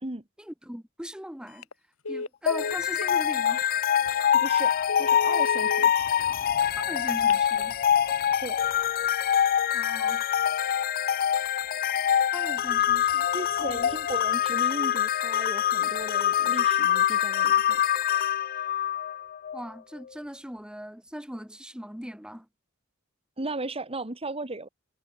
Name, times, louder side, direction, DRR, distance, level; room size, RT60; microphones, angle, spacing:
voice 1, 0.4-1.7 2.1-3.6 6.8-7.8 9.7-10.2 12.3-13.3 13.6-13.8 19.5-22.5, equal, 5° right, 2.5 m, -40 dB
Telephone, 1.5-1.7 2.0-3.1 3.7-3.8 4.2-4.3 4.8-5.9 7.1-7.7, left 3 dB, 80° left, 2.0 m, -34 dB
sound 1, 2.5-19.6, left 10 dB, 45° left, 0.4 m, -25 dB
sound 2, 2.6-18.3 19.5-19.8 20.0-20.7, right 1 dB, 70° right, 5.1 m, -57 dB
voice 2, 4.3-4.7 5.0-6.1 8.4-8.6 13.3-17.8 23.4-24.7, right 2 dB, 30° right, 2.2 m, -36 dB
head